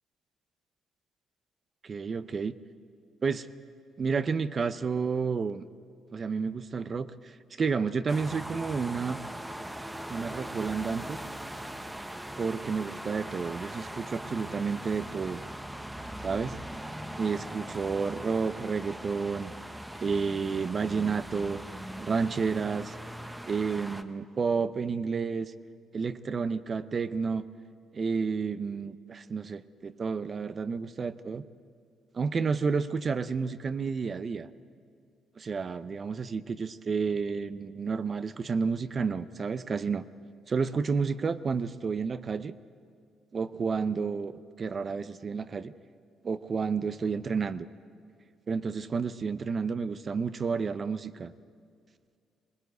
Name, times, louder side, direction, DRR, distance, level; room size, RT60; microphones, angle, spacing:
voice 1, 1.8-2.5 3.2-3.5 4.0-5.7 6.1-9.2 10.1-11.2 12.4-15.4 16.2-16.6 17.2-19.5 19.9-21.6 22.0-23.0 23.5-25.5 25.9-27.4 27.9-31.4 32.1-34.5 35.4-40.0 40.5-42.6 43.3-44.3 44.6-45.7 46.2-47.7 48.5-51.3, right 5 dB, 40° right, 13 dB, 0.7 m, -30 dB
sound 1, 8.1-24.0, right 1 dB, 10° right, 1.1 m, -40 dB
21.5 x 18.5 x 8.0 m, 2.2 s
cardioid pair, 90°, 0 cm